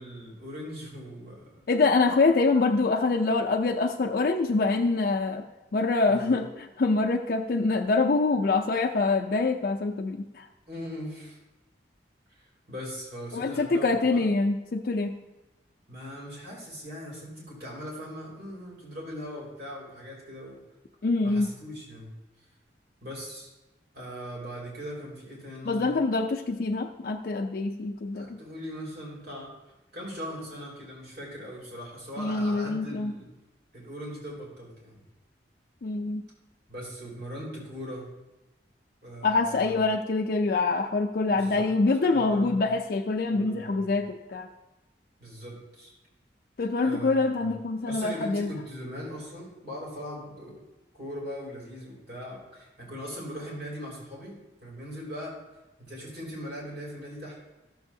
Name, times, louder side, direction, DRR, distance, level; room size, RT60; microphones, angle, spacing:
voice 1, 0.0-1.6 6.1-6.4 10.7-11.4 12.3-14.3 15.9-20.6 21.2-22.1 23.0-23.5 23.9-26.0 28.1-29.5 29.9-33.3 33.7-35.0 36.7-38.1 39.0-39.8 41.3-41.7 42.1-42.7 43.3-44.0 45.2-45.9 46.8-47.5 47.9-50.6 50.9-55.4 55.8-57.4, equal, 55° right, -4 dB, 2.9 m, -40 dB
voice 2, 1.7-5.5 5.7-10.5 13.3-15.1 21.0-21.5 25.6-28.4 32.2-33.1 35.8-36.2 39.2-44.5 46.6-48.5, left 3 dB, 55° left, 2 dB, 0.4 m, -25 dB
14.0 x 6.9 x 2.7 m, 1.0 s
head